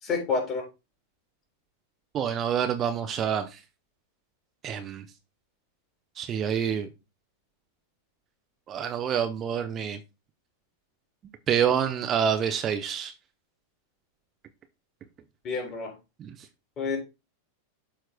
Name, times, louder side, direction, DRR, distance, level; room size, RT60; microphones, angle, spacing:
voice 1, 0.0-0.6 15.4-15.9 16.8-17.0, left 4 dB, 35° left, 3.2 m, -28 dB
voice 2, 2.1-3.6 4.6-5.0 6.2-6.9 8.7-10.0 11.5-13.1 16.2-16.3, right 8 dB, 30° right, 0.7 m, -27 dB
12.0 x 4.5 x 2.2 m
figure-of-eight pair, 90°, 0 cm